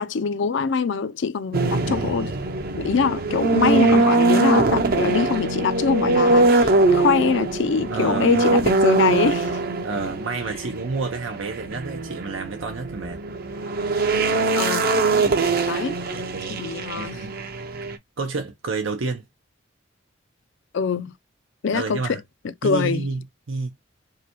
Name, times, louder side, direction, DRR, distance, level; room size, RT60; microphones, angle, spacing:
voice 1, 0.0-2.3 2.8-9.5 14.5-14.9 15.7-16.0 16.6-17.2 20.7-21.1 21.6-22.2 22.6-23.1, left 5 dB, 65° left, 0.5 m, -23 dB
sound 1, 1.5-18.0, right 3 dB, 50° right, 0.7 m, -22 dB
voice 2, 1.8-2.1 7.9-8.4 9.8-13.2 15.5-15.7 16.1-16.6 16.9-17.3 18.2-19.2 21.7-22.2 22.6-23.2 23.5-23.7, right 3 dB, 85° right, 0.8 m, -29 dB
4.7 x 2.2 x 3.0 m
head